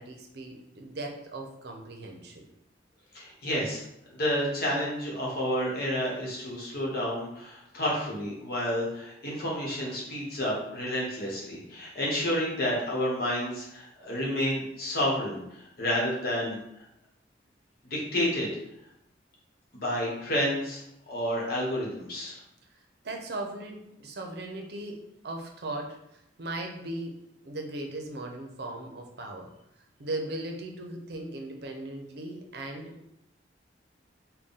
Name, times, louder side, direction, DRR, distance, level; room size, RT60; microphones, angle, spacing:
voice 1, 0.0-2.4 23.0-27.1 27.4-29.5 30.0-33.1, right 2 dB, 60° right, 2 dB, 0.6 m, -38 dB
voice 2, 3.1-3.8 4.1-16.8 17.8-18.5 19.7-20.8 21.1-22.4, equal, 55° left, -4 dB, 1.1 m, -30 dB
3.6 x 2.2 x 4.0 m, 0.80 s
head